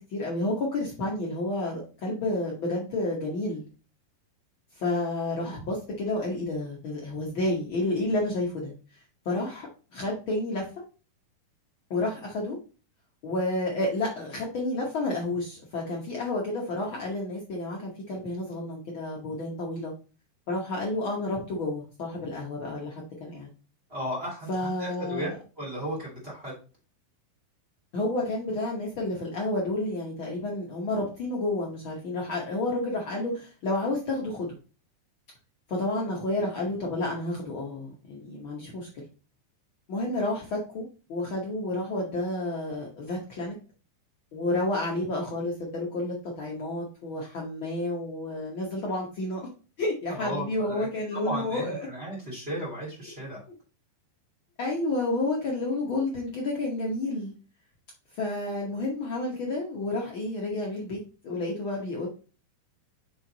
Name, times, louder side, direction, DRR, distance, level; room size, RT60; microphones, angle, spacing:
voice 1, 0.0-3.6 4.8-8.7 9.2-9.7 9.9-10.7 11.9-12.6 13.2-19.9 20.5-23.5 24.5-25.4 27.9-34.5 35.7-38.9 39.9-40.8 41.1-43.5 44.3-49.4 49.8-51.9 54.6-57.3 58.1-61.0 61.2-62.1, left 2 dB, 85° left, -2 dB, 1.1 m, -30 dB
voice 2, 23.9-25.3 25.6-26.5 50.1-53.4, equal, 20° right, -4 dB, 2.4 m, -35 dB
5.7 x 4.6 x 3.9 m, 0.35 s
omnidirectional pair, 4.2 m